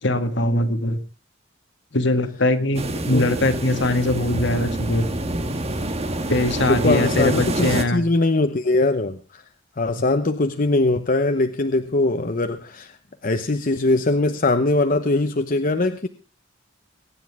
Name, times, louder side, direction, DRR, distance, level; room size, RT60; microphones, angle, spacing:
voice 1, 0.0-1.0 1.9-5.1 6.3-8.1, left 1 dB, 65° left, 7 dB, 1.8 m, -21 dB
sound 1, 2.7-7.8, right 1 dB, 35° right, 1.5 m, -26 dB
voice 2, 6.7-9.4 9.8-12.9 13.2-16.1, left 2 dB, 45° left, 7 dB, 0.9 m, -21 dB
24.0 x 9.6 x 3.6 m, 0.33 s
head